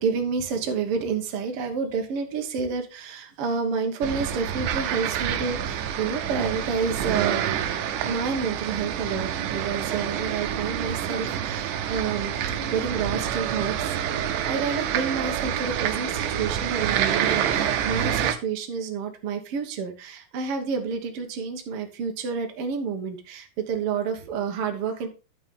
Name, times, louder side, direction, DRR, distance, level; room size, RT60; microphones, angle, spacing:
voice 1, 0.0-12.3 12.7-25.1, right 5 dB, 55° right, 4 dB, 1.9 m, -29 dB
sound 1, 4.0-18.3, right 9 dB, 90° right, 2.3 m, -27 dB
12.5 x 5.4 x 3.7 m, 0.32 s
omnidirectional pair, 3.6 m